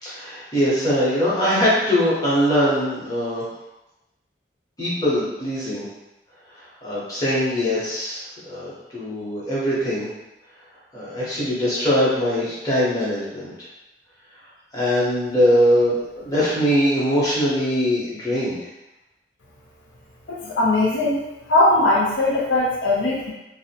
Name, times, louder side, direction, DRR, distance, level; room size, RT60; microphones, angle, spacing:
voice 1, 0.0-3.4 4.8-5.9 6.8-10.1 10.9-13.5 14.7-18.6, equal, 20° left, -9 dB, 0.8 m, -22 dB
voice 2, 20.3-21.2 21.5-23.3, left 2 dB, 85° left, -4 dB, 0.5 m, -19 dB
2.5 x 2.0 x 2.8 m, 0.95 s
head